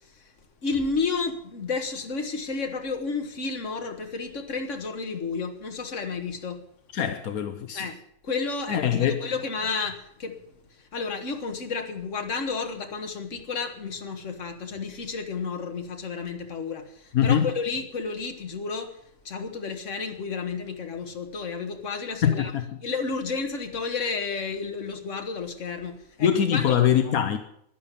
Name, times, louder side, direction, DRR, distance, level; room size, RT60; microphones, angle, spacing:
voice 1, 0.6-6.6 7.7-8.0 8.2-10.4 10.9-18.9 19.3-22.5 22.8-26.8, left 4 dB, 60° left, 1.9 m, -31 dB
voice 2, 6.9-7.8 8.7-9.2 17.1-17.5 22.2-22.8 26.2-27.4, left 9 dB, 85° left, 1.4 m, -23 dB
11.5 x 10.5 x 8.4 m
omnidirectional pair, 1.5 m